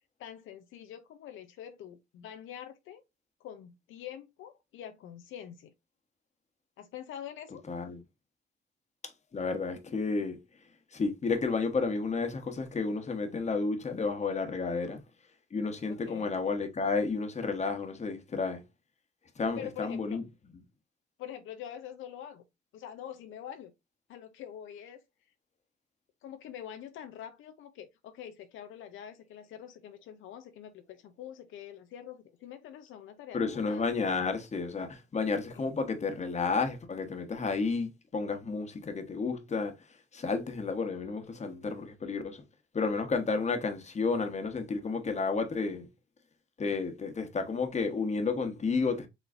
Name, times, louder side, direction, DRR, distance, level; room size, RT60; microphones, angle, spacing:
voice 1, 0.2-3.0 3.4-5.7 6.8-7.6 15.9-16.4 19.6-20.2 21.2-22.4 22.7-23.7 24.1-25.0 26.2-33.9, left 10 dB, 80° left, 0.6 m, -45 dB
voice 2, 7.7-8.0 9.3-10.4 10.9-15.0 15.5-18.6 19.4-20.2 33.3-39.7 40.1-42.4 42.7-45.9 46.6-49.1, left 4 dB, 35° left, 1.2 m, -31 dB
5.0 x 3.1 x 2.5 m
cardioid pair, 90°, 20 cm